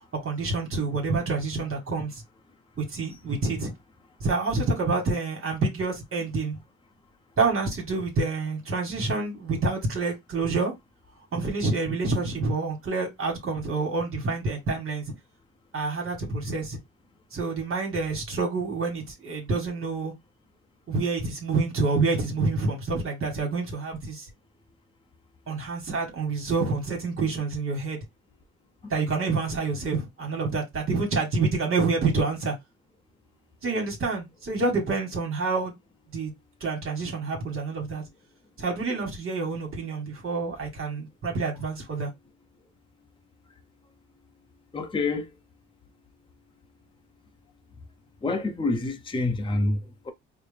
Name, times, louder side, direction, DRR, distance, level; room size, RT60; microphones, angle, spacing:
voice 1, 0.2-2.2 2.8-3.7 4.2-6.6 7.4-10.7 11.3-15.0 15.7-16.8 17.3-20.1 20.9-24.3 25.5-28.0 28.9-32.5 33.6-35.7 36.1-36.3 36.6-38.0 38.6-42.1, right 3 dB, 45° right, 1.5 m, -27 dB
voice 2, 44.7-45.3 48.2-50.1, left 2 dB, 15° left, 0.7 m, -27 dB
4.4 x 2.1 x 3.3 m
cardioid pair, 90°, 30 cm